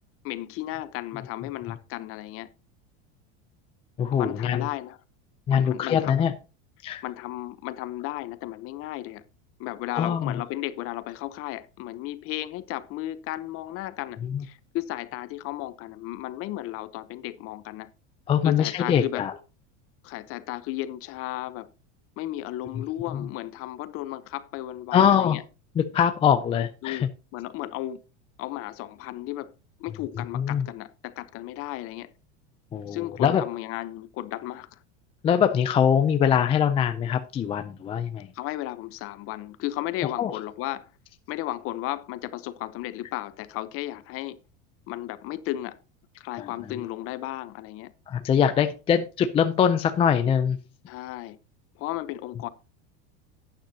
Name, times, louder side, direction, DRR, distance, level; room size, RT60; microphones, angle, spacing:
voice 1, 0.2-2.5 4.1-5.0 5.5-6.1 7.0-9.2 9.6-17.9 18.4-19.2 20.0-21.7 22.2-25.4 26.8-28.0 28.4-29.5 29.8-32.1 32.9-34.8 38.3-40.9 41.3-44.4 44.9-45.8 46.2-47.9 50.9-51.4 51.8-52.5, left 15 dB, 40° left, 0.8 m, -34 dB
voice 2, 4.0-4.7 5.5-6.3 6.8-7.0 9.9-10.4 14.2-14.4 18.3-19.3 22.8-22.9 23.1-23.3 24.9-25.4 25.8-27.1 30.1-30.7 32.7-33.5 35.2-38.3 40.0-40.4 46.4-46.9 48.1-50.6, left 8 dB, 15° left, 0.4 m, -23 dB
11.5 x 9.1 x 2.8 m
supercardioid pair, 150°, 34 cm